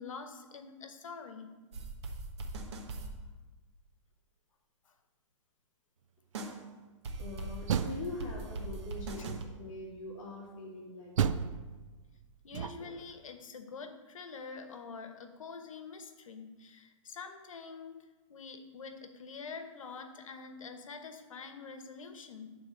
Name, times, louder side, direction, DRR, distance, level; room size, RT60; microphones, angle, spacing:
voice 1, 0.0-1.6 12.4-18.0 18.3-22.6, left 5 dB, 80° left, 7 dB, 1.1 m, -46 dB
sound 1, 1.7-3.1 6.3-6.6 7.0-9.4, right 2 dB, 55° right, 1.2 m, -40 dB
voice 2, 7.2-11.4, left 2 dB, 25° left, -8 dB, 2.4 m, -43 dB
Door, 7.4-8.7 9.2-9.8 11.2-13.1, right 8 dB, 75° right, 0.4 m, -34 dB
10.5 x 3.6 x 6.5 m, 1.2 s
hypercardioid pair, 165°, 17 cm